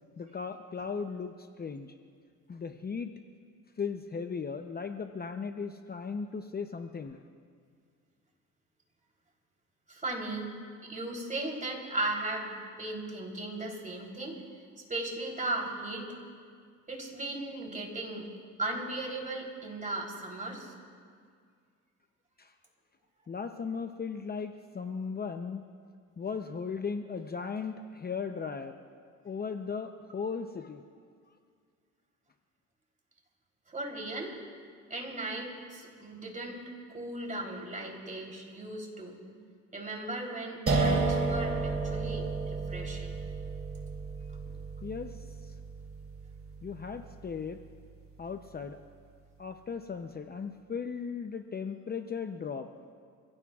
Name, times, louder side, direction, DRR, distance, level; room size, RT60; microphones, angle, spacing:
voice 1, 0.2-1.9 2.5-3.1 3.8-7.2 22.4-22.5 23.3-25.7 26.2-28.8 29.2-30.8 44.8-45.1 46.6-47.6 48.2-48.8 49.4-52.7, left 5 dB, 30° left, 6 dB, 0.7 m, -37 dB
voice 2, 9.9-10.5 10.8-14.4 14.9-16.1 16.9-18.3 18.6-20.7 33.7-34.3 34.9-36.6 36.9-39.2 39.7-43.1, right 2 dB, 25° right, 0 dB, 3.5 m, -37 dB
sound 1, 40.7-47.6, right 3 dB, 45° right, 2.7 m, -32 dB
29.5 x 16.5 x 2.4 m, 2.1 s
cardioid pair, 90°, 30 cm